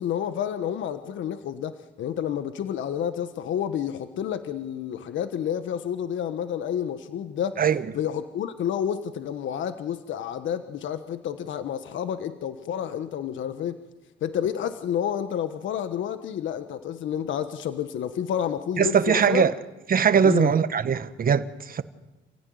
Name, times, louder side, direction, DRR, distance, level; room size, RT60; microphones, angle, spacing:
voice 1, 0.0-7.6 7.9-13.8 14.2-19.4 20.2-20.5, left 9 dB, 75° left, 1.4 m, -30 dB
voice 2, 18.8-19.5 19.9-21.8, right 7 dB, 45° right, 1.5 m, -21 dB
28.0 x 16.5 x 9.6 m
cardioid pair, 90°, 20 cm